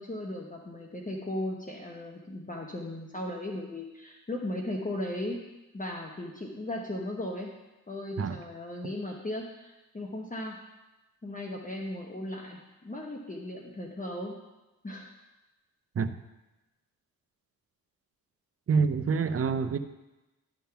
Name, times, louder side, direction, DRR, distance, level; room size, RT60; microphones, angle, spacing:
voice 1, 0.0-5.4 5.7-7.5 7.9-10.6 11.2-14.4 14.8-15.1, left 1 dB, 20° left, 0 dB, 1.1 m, -37 dB
voice 2, 18.7-19.8, right 5 dB, 40° right, 10 dB, 0.6 m, -26 dB
11.5 x 3.8 x 5.7 m, 1.0 s
cardioid pair, 65°, 37 cm